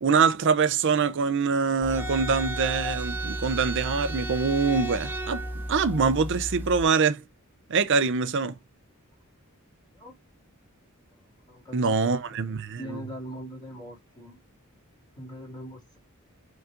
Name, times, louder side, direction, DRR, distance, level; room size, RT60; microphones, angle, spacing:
voice 1, 0.0-7.2 7.7-8.5 11.7-13.0, right 5 dB, 55° right, 0.5 m, -24 dB
sound 1, 1.8-6.8, right 1 dB, 10° right, 0.6 m, -33 dB
voice 2, 11.5-12.2 12.8-14.4 15.1-16.0, equal, 20° left, 2.5 m, -41 dB
5.4 x 3.8 x 2.5 m
head